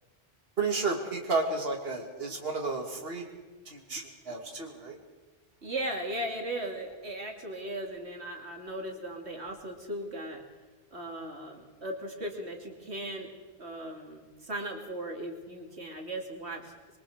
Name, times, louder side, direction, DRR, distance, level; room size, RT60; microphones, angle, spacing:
voice 1, 0.6-3.3 3.7-5.0, right 3 dB, 65° right, 1 dB, 2.7 m, -32 dB
voice 2, 5.6-10.4 10.9-13.3 13.6-16.7, right 1 dB, 90° right, 2 dB, 3.1 m, -37 dB
26.5 x 23.0 x 5.0 m, 1.3 s
omnidirectional pair, 1.1 m